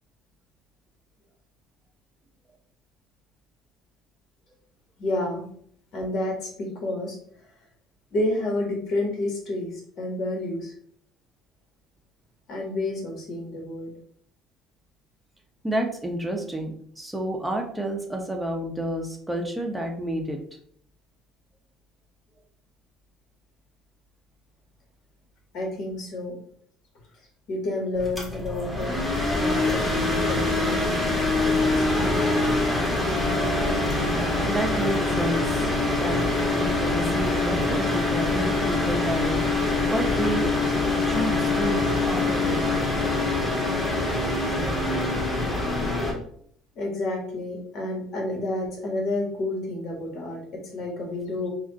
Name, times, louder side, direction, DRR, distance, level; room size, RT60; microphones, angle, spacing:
voice 1, 5.0-5.5 5.9-7.2 8.1-10.7 12.5-13.9 25.5-26.4 27.5-28.9 29.4-32.2 33.9-34.1 46.8-51.5, left 2 dB, 55° left, 0 dB, 1.8 m, -30 dB
voice 2, 15.6-20.4 34.5-35.7 36.0-36.2 36.5-39.6 39.9-40.5 41.0-42.6, right 1 dB, 5° right, 2 dB, 0.8 m, -30 dB
sound 1, 27.9-46.1, left 2 dB, 15° left, 1.9 m, -24 dB
4.8 x 2.6 x 4.0 m, 0.62 s
cardioid pair, 115°, 0 cm